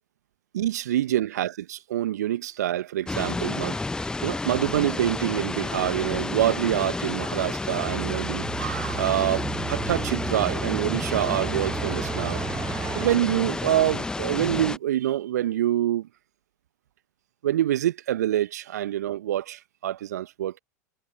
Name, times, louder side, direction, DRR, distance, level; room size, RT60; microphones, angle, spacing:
voice 1, 0.5-3.8 4.2-12.4 12.9-16.1 17.4-20.6, right 12 dB, 65° right, 1.2 m, -26 dB
sound 1, 3.1-14.8, left 3 dB, 10° left, 0.8 m, -31 dB
sound 2, 7.4-13.2, right 11 dB, 30° right, 1.0 m, -34 dB
figure-of-eight pair, 90°, 10 cm